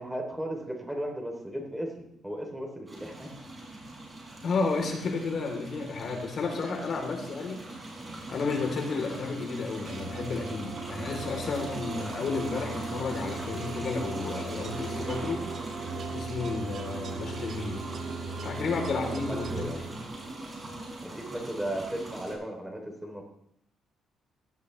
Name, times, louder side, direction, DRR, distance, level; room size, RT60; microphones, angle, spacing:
voice 1, 0.0-3.3 18.6-19.8 21.0-23.2, right 1 dB, 5° right, 2 dB, 3.2 m, -36 dB
sound 1, 2.9-22.3, right 2 dB, 25° right, 6.2 m, -41 dB
voice 2, 4.4-7.6 8.3-15.4 16.1-17.9 18.4-19.7, left 4 dB, 55° left, 1 dB, 3.5 m, -32 dB
sound 2, 9.8-20.5, right 4 dB, 60° right, 1.5 m, -38 dB
16.5 x 12.5 x 3.3 m, 0.77 s
cardioid pair, 90°, 0 cm